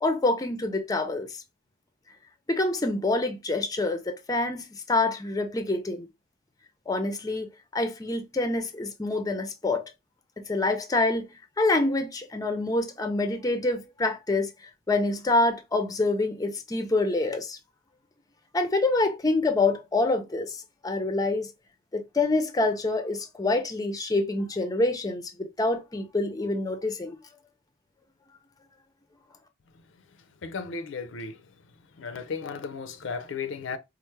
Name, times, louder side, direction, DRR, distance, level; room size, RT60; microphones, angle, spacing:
voice 1, 0.0-1.3 2.5-6.1 6.9-9.9 10.4-11.3 11.6-14.5 14.9-17.6 18.5-21.5 21.9-27.2, left 2 dB, 20° left, 0.5 m, -26 dB
voice 2, 30.4-31.3 32.0-33.8, left 5 dB, 70° left, 0.5 m, -34 dB
4.3 x 2.0 x 3.2 m
head